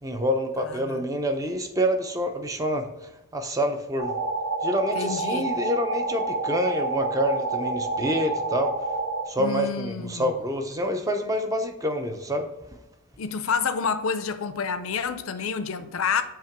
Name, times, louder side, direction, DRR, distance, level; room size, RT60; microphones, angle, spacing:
voice 1, 0.0-4.1 4.6-8.7 9.3-12.8, equal, 15° right, 0.6 m, -27 dB
voice 2, 0.7-1.0 4.9-5.5 9.4-10.3 13.2-16.2, left 6 dB, 70° left, 0.5 m, -28 dB
sound 1, 4.0-9.2, right 2 dB, 70° right, 0.9 m, -28 dB
7.4 x 2.9 x 5.8 m
head